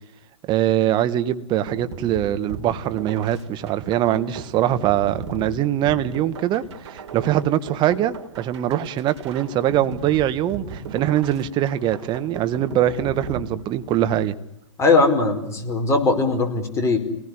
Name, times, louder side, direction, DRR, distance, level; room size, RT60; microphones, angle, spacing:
voice 1, 0.5-14.3, right 11 dB, 30° right, 11 dB, 1.6 m, -22 dB
sound 1, 1.7-14.2, right 5 dB, 60° right, 4.6 m, -37 dB
voice 2, 14.8-17.0, left 3 dB, 15° left, 4 dB, 5.1 m, -19 dB
28.5 x 19.5 x 10.0 m, 0.90 s
hypercardioid pair, 120°, 16 cm